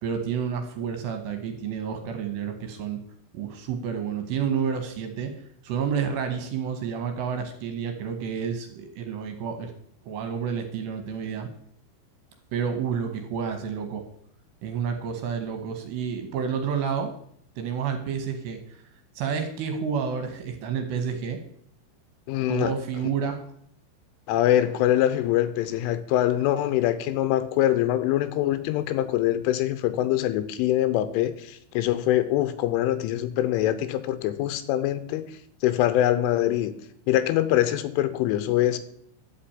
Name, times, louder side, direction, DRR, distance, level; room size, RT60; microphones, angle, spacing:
voice 1, 0.0-3.0 3.3-5.3 5.6-9.7 10.0-11.5 12.5-14.0 14.6-17.1 17.6-18.6 19.2-21.4 22.5-23.4, right 7 dB, 75° right, 6 dB, 2.8 m, -29 dB
voice 2, 22.3-22.7 24.3-35.2 35.6-36.7 37.1-38.8, left 13 dB, 85° left, 12 dB, 3.1 m, -24 dB
11.5 x 5.9 x 8.4 m, 0.68 s
omnidirectional pair, 5.8 m